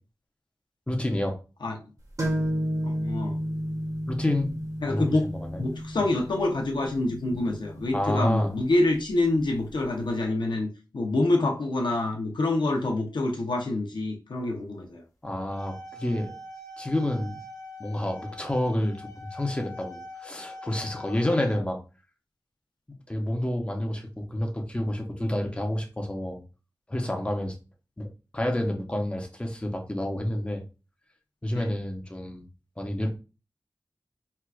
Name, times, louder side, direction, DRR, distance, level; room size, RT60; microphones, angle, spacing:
voice 1, 0.9-1.4 4.1-5.0 5.3-5.6 7.9-8.5 15.2-16.3 16.8-17.4 17.8-21.8 22.9-26.4 26.9-27.5 28.0-28.1 28.3-30.6 31.4-32.4 32.8-33.1, left 1 dB, 15° left, 0.7 m, -29 dB
sound 1, 2.2-9.7, equal, 50° right, 1.2 m, -33 dB
voice 2, 2.8-3.4 4.8-5.2 5.6-15.0 31.5-31.6, left 2 dB, 85° left, 0.7 m, -26 dB
sound 2, 15.3-21.6, left 1 dB, 45° left, 0.9 m, -43 dB
4.5 x 2.4 x 2.3 m
wide cardioid pair, 80°, 8 cm